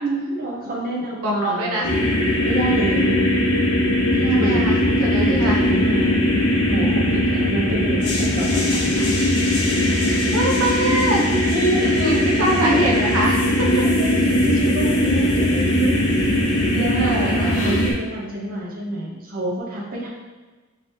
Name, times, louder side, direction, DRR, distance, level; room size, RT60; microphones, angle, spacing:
voice 1, 0.0-2.0 2.4-3.2 4.1-4.8 5.2-6.2 6.7-9.1 11.4-12.9 13.7-16.2 16.5-20.1, right 2 dB, 40° right, -4 dB, 0.7 m, -27 dB
voice 2, 1.2-2.0 4.3-5.6 10.1-11.3 12.0-13.5 16.9-17.7, right 1 dB, 80° right, -3 dB, 0.6 m, -24 dB
sound 1, 1.8-17.9, left 1 dB, 90° left, 0.7 m, -19 dB
3.0 x 2.8 x 3.3 m, 1.3 s
head